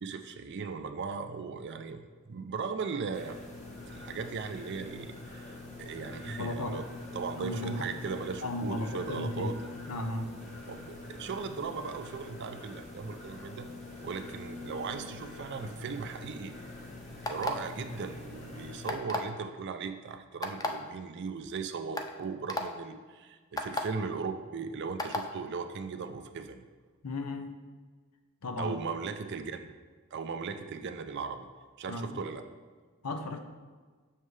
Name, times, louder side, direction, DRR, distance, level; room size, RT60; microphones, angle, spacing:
voice 1, 0.0-3.4 3.9-6.8 7.1-9.7 10.7-13.7 14.0-16.6 17.3-26.7 28.6-29.7 30.1-31.5 31.8-32.4, right 5 dB, 50° right, 7 dB, 0.4 m, -38 dB
sound 1, 3.1-18.9, left 2 dB, 30° left, 1.1 m, -45 dB
voice 2, 6.2-6.8 7.3-7.9 8.4-9.6 9.9-10.3 27.0-27.5 28.4-28.8 31.9-32.2 33.0-33.4, left 1 dB, 80° left, 7 dB, 0.7 m, -35 dB
sound 2, 17.2-17.7 18.9-19.3 20.4-20.7 21.4-21.5 22.0-22.1 22.5-22.6 23.6-23.8 25.0-25.2, left 2 dB, 15° left, 0.4 m, -32 dB
7.3 x 6.3 x 3.2 m, 1.4 s
head